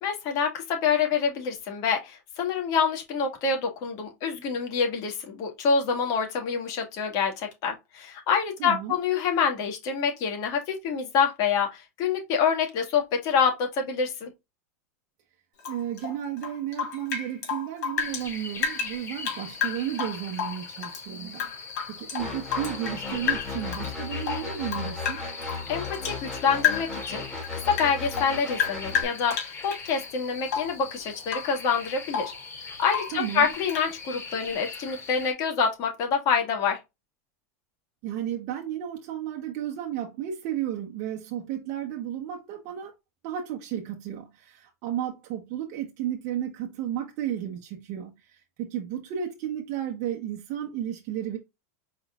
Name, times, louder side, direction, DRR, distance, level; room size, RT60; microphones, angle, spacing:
voice 1, 0.0-14.3 25.7-27.2 27.7-32.3 32.8-36.8, left 6 dB, 50° left, 2.0 m, -26 dB
voice 2, 8.6-9.0 15.7-21.5 21.9-25.2 33.1-33.5 38.0-42.9 43.2-51.4, right 10 dB, 50° right, 1.1 m, -33 dB
Rain / Drip, 15.6-18.3 18.6-21.0 21.3-23.0 23.3-23.9 24.2-26.2 26.6-27.0 27.4-29.9 30.5-30.8 31.3-31.6 31.9-32.4 32.9-33.2 33.7-33.9, left 8 dB, 90° left, 2.6 m, -31 dB
sound 1, 18.0-35.3, left 4 dB, 30° left, 3.4 m, -41 dB
sound 2, 22.2-29.0, left 4 dB, 10° left, 2.5 m, -36 dB
4.7 x 4.3 x 2.4 m
supercardioid pair, 130°, 9 cm